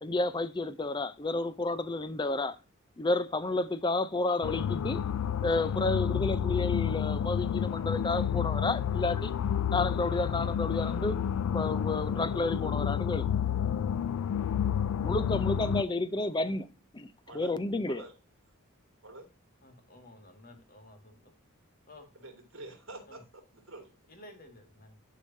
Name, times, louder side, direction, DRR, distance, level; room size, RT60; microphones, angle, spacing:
voice 1, 0.0-2.6 3.0-5.0 5.4-9.3 9.7-11.2 11.5-13.3 15.0-18.0, left 2 dB, 20° left, 0.5 m, -31 dB
sound 1, 4.4-15.8, left 8 dB, 80° left, 0.3 m, -30 dB
voice 2, 19.6-21.3 21.9-22.1 23.1-23.2 24.1-25.0, left 1 dB, 40° left, 1.9 m, -53 dB
voice 3, 22.1-23.2 23.5-23.9, right 2 dB, 65° right, 2.7 m, -47 dB
10.5 x 4.9 x 2.7 m
head